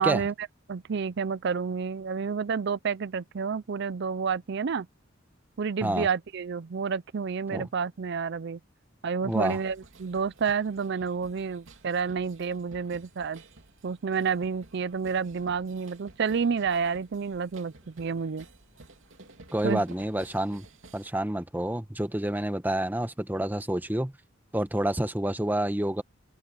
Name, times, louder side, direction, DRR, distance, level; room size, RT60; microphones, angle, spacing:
voice 1, 0.0-4.9 5.6-8.6 9.0-13.4 13.8-18.5 19.6-19.8, right 6 dB, 60° right, 0.5 m, -29 dB
voice 2, 9.2-9.6 19.5-20.7 20.9-24.1 24.5-26.0, right 1 dB, 10° right, 1.0 m, -28 dB
sound 1, 9.3-21.1, right 3 dB, 85° right, 2.8 m, -54 dB
head